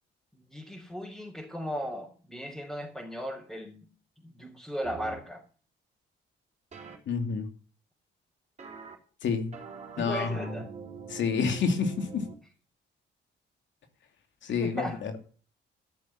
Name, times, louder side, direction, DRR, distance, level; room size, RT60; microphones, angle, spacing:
voice 1, 0.3-3.9 4.2-5.4 10.0-10.7 14.5-15.0, equal, ahead, -5 dB, 4.2 m, -37 dB
sound 1, 4.8-5.2 6.7-7.0 8.6-8.9 9.5-12.3, right 5 dB, 35° right, 3.9 m, -44 dB
voice 2, 7.1-7.5 9.2-9.5 10.0-10.6 11.1-12.3 14.4-15.2, left 5 dB, 70° left, 6 dB, 2.6 m, -29 dB
13.5 x 7.0 x 7.3 m, 0.40 s
cardioid pair, 90°, 20 cm